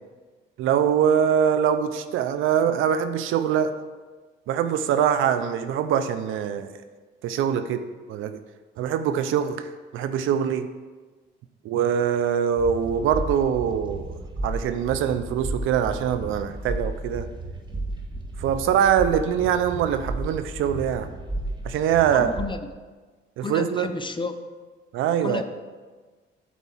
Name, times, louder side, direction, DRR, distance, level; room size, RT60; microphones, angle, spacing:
voice 1, 0.6-3.7 4.5-6.7 7.2-7.8 8.1-8.4 8.8-9.7 9.9-10.7 11.6-14.1 14.4-17.3 18.4-21.1 21.6-22.3 23.4-23.9 24.9-25.4, right 8 dB, 85° right, 10 dB, 0.6 m, -23 dB
sound 1, 12.6-22.4, right 2 dB, 25° right, 1.5 m, -33 dB
voice 2, 22.1-22.7 23.4-24.4 25.2-25.4, left 4 dB, 25° left, 9 dB, 0.7 m, -31 dB
8.3 x 4.6 x 7.4 m, 1.4 s
cardioid pair, 90°, 20 cm